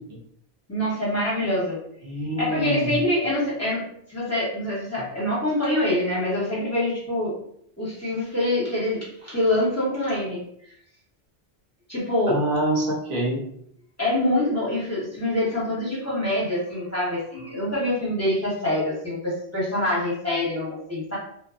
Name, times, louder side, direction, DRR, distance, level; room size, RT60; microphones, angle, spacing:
voice 1, 0.7-1.8 2.4-3.8 4.1-7.4 7.8-10.4 11.9-12.4 14.0-21.2, left 1 dB, 15° left, -8 dB, 1.0 m, -25 dB
voice 2, 2.0-3.0 12.3-13.4, right 1 dB, 70° right, -3 dB, 1.0 m, -25 dB
2.7 x 2.2 x 2.5 m, 0.68 s
omnidirectional pair, 1.1 m